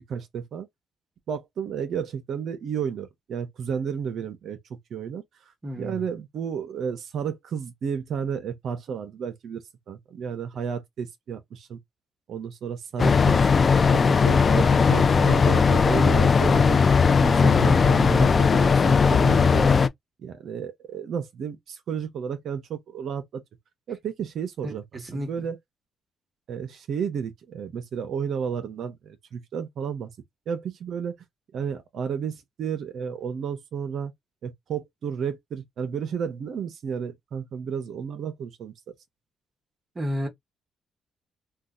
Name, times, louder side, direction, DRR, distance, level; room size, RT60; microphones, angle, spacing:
voice 1, 0.1-0.7 1.3-5.2 5.8-11.8 12.3-13.4 13.9-16.8 17.2-19.7 20.2-23.4 23.9-25.6 26.5-30.1 30.5-31.2 31.5-34.1 34.4-38.7, right 7 dB, 65° right, 0.7 m, -32 dB
voice 2, 5.6-6.1 24.6-25.5 39.9-40.3, equal, 30° right, 1.0 m, -32 dB
sound 1, 13.0-19.9, left 5 dB, 40° left, 0.4 m, -18 dB
2.6 x 2.3 x 3.6 m
cardioid pair, 90°, 0 cm